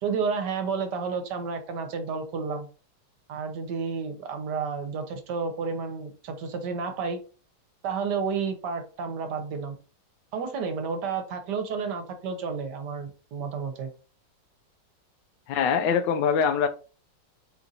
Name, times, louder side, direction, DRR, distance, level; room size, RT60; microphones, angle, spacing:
voice 1, 0.0-2.7 3.3-7.2 7.8-9.7 10.3-13.9, right 5 dB, 70° right, 1.4 m, -31 dB
voice 2, 15.5-16.7, left 6 dB, 80° left, 1.2 m, -23 dB
4.4 x 2.5 x 4.0 m
omnidirectional pair, 2.0 m